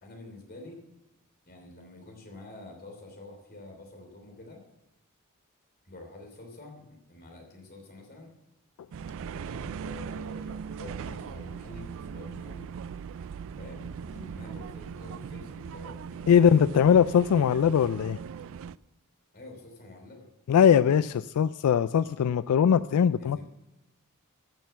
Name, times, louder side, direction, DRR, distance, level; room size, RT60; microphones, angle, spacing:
voice 1, 0.0-0.8 1.4-4.6 5.8-8.3 9.3-12.7 13.6-16.5 19.3-20.3 23.1-23.4, left 2 dB, 45° left, 3 dB, 3.2 m, -47 dB
sound 1, 8.9-18.8, right 6 dB, 65° right, 0.3 m, -39 dB
voice 2, 16.3-18.2 20.5-23.4, left 8 dB, 85° left, 15 dB, 0.3 m, -21 dB
14.5 x 6.7 x 7.0 m, 0.93 s
head